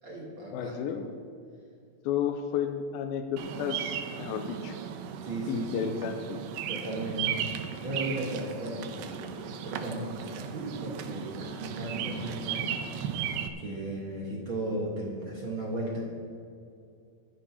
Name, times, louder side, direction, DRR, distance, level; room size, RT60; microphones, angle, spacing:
voice 1, 0.0-0.8 5.2-5.9 6.7-12.8 13.1-13.3 13.6-16.1, right 1 dB, 55° right, -3 dB, 1.4 m, -36 dB
voice 2, 0.5-1.1 2.1-4.8 5.5-6.4, left 8 dB, 80° left, 5 dB, 2.2 m, -32 dB
Bird vocalization bird call bird song, 3.4-13.5, right 9 dB, 85° right, 2.6 m, -36 dB
24.5 x 9.7 x 2.9 m, 2.4 s
omnidirectional pair, 4.6 m